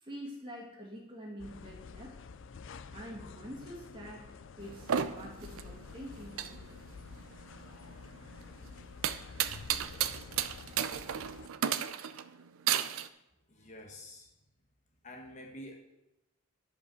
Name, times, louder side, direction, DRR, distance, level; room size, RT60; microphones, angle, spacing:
voice 1, 0.0-2.2 2.9-4.3 4.6-7.1, equal, 20° right, -2 dB, 2.2 m, -46 dB
sound 1, 1.4-11.5, left 5 dB, 60° left, 0.4 m, -49 dB
sound 2, 4.6-13.1, right 9 dB, 75° right, 0.5 m, -34 dB
voice 2, 13.5-14.3 15.0-15.7, left 1 dB, 35° left, 1 dB, 1.2 m, -48 dB
11.0 x 5.1 x 6.4 m, 0.91 s
head